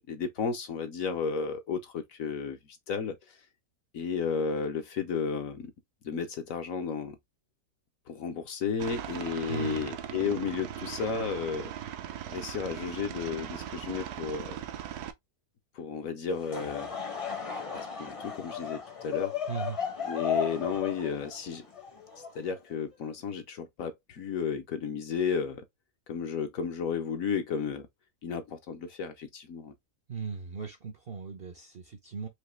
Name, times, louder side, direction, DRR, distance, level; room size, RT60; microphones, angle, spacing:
voice 1, 0.1-2.6 2.9-3.4 3.9-5.7 6.0-7.2 8.1-11.7 12.3-14.6 15.7-17.0 17.7-19.3 20.1-21.7 22.3-25.6 26.1-27.9 28.2-29.7, left 6 dB, 60° left, 1.1 m, -33 dB
Aircraft, 8.8-15.1, right 10 dB, 75° right, 1.2 m, -39 dB
voice 2, 9.5-9.9 19.5-19.9 30.1-32.3, right 5 dB, 50° right, 0.7 m, -38 dB
Laughter / Crowd, 16.3-22.7, left 7 dB, 25° left, 0.8 m, -35 dB
4.9 x 2.8 x 3.1 m
omnidirectional pair, 1.7 m